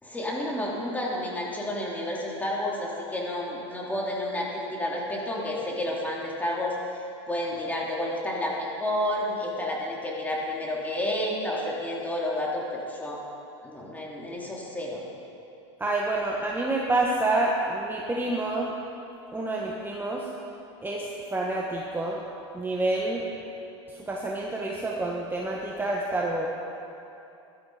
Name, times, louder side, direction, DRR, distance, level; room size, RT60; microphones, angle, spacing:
voice 1, 0.0-13.2 13.6-15.0, left 1 dB, 10° left, -4 dB, 3.6 m, -30 dB
voice 2, 15.8-18.7 19.3-20.2 20.8-21.0 21.3-22.2 22.5-23.2 24.1-26.5, right 2 dB, 15° right, -2 dB, 1.5 m, -28 dB
17.0 x 12.0 x 5.1 m, 2.8 s
hypercardioid pair, 95°, 15 cm